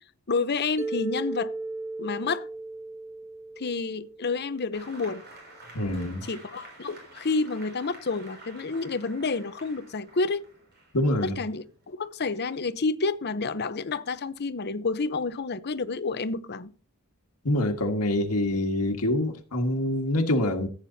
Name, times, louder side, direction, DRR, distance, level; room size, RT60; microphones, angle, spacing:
voice 1, 0.3-1.5 2.0-2.5 3.6-5.2 6.3-10.4 11.2-16.7, left 4 dB, 45° left, 0.8 m, -29 dB
Mallet percussion, 0.8-4.9, right 2 dB, 10° right, 0.4 m, -36 dB
Applause, 4.7-11.9, right 2 dB, 50° right, 5.8 m, -49 dB
voice 2, 5.7-6.3 10.9-11.4 17.4-20.7, left 1 dB, 90° left, 1.7 m, -25 dB
15.0 x 9.0 x 2.8 m
head